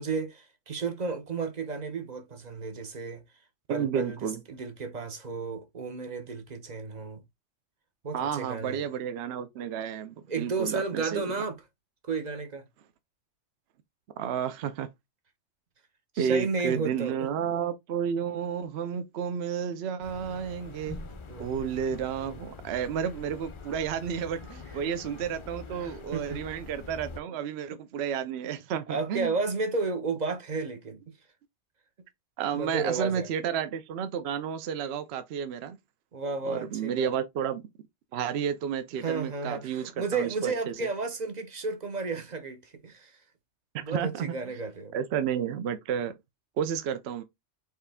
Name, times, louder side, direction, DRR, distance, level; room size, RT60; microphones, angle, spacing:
voice 1, 0.0-3.2 3.7-7.2 8.0-8.9 10.3-11.6 12.0-12.6 16.1-17.3 21.3-21.5 25.8-26.4 28.9-31.0 32.5-33.3 36.1-37.1 39.0-43.1 43.8-44.9, right 4 dB, 40° right, 0.8 m, -33 dB
voice 2, 3.7-4.4 8.1-11.3 14.2-14.9 16.2-21.0 21.4-29.3 32.4-35.8 36.4-37.6 38.1-40.7 43.7-44.4 44.9-46.2 46.6-47.2, right 8 dB, 65° right, 0.8 m, -31 dB
sound 1, 20.0-27.2, left 4 dB, 50° left, 0.3 m, -44 dB
4.7 x 3.2 x 3.4 m
omnidirectional pair, 1.2 m